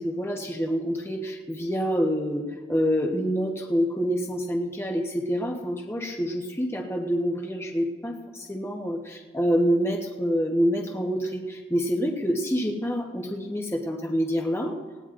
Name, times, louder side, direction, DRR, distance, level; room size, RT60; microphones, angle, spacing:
voice 1, 0.0-9.0 9.3-14.7, equal, 15° left, 1 dB, 1.0 m, -27 dB
19.5 x 16.5 x 2.5 m, 1.4 s
head